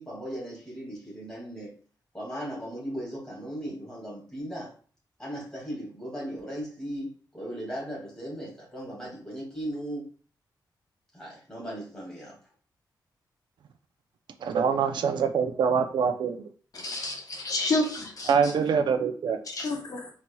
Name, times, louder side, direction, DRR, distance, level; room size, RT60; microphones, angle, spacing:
voice 1, 0.0-1.7 2.1-4.8 5.2-10.0 11.1-12.4, equal, 10° left, -5 dB, 2.2 m, -37 dB
voice 2, 14.4-16.4 18.3-19.4, right 6 dB, 80° right, 6 dB, 0.5 m, -24 dB
voice 3, 16.7-18.3 19.5-20.1, left 2 dB, 50° left, 1 dB, 0.8 m, -29 dB
4.5 x 4.1 x 2.3 m, 0.41 s
wide cardioid pair, 165°, 8 cm